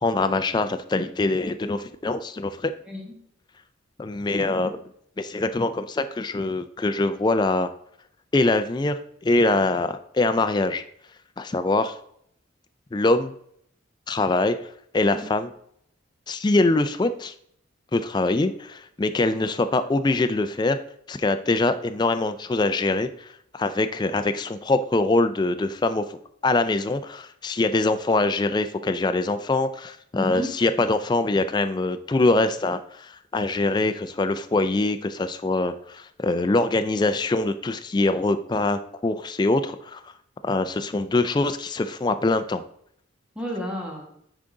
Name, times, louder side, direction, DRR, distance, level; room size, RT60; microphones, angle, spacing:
voice 1, 0.0-2.7 4.0-4.8 5.2-7.7 8.3-10.8 11.4-11.9 12.9-13.3 14.1-14.6 14.9-15.5 16.3-17.3 17.9-20.8 21.1-23.3 23.5-26.2 26.4-40.0 40.4-42.6, left 2 dB, 20° left, 9 dB, 0.3 m, -23 dB
voice 2, 2.8-3.2 15.1-15.3 30.1-30.5 43.3-44.1, equal, 5° right, -2 dB, 1.4 m, -32 dB
9.7 x 3.7 x 3.8 m, 0.69 s
head